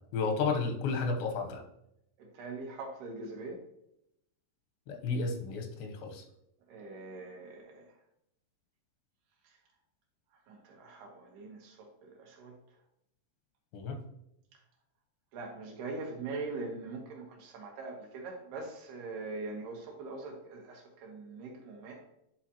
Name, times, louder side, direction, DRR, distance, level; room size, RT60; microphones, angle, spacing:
voice 1, 0.1-1.6 4.9-6.2 13.7-14.0, left 4 dB, 85° left, 4 dB, 3.1 m, -32 dB
voice 2, 2.2-3.6 6.7-7.9 9.4-9.6 10.5-12.6 15.3-22.0, right 3 dB, 70° right, 1 dB, 2.9 m, -42 dB
11.0 x 4.0 x 2.9 m, 0.79 s
omnidirectional pair, 5.0 m